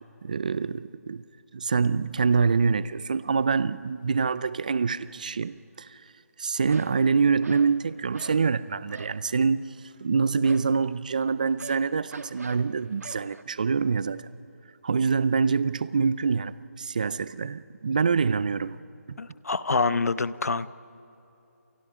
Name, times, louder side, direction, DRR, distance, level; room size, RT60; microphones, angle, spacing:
voice 1, 0.2-1.2 1.5-6.0 6.4-9.7 10.0-14.3 14.8-18.8 19.1-19.2, right 5 dB, 30° right, 0.5 m, -25 dB
sound 1, 4.9-5.1 6.7-7.0 7.4-7.8 8.1-8.5 8.9-9.3 10.4-13.4, right 3 dB, 70° right, 1.7 m, -44 dB
voice 2, 19.2-20.7, left 4 dB, 70° left, 1.0 m, -26 dB
29.0 x 29.0 x 5.0 m
hypercardioid pair, 175°, 9 cm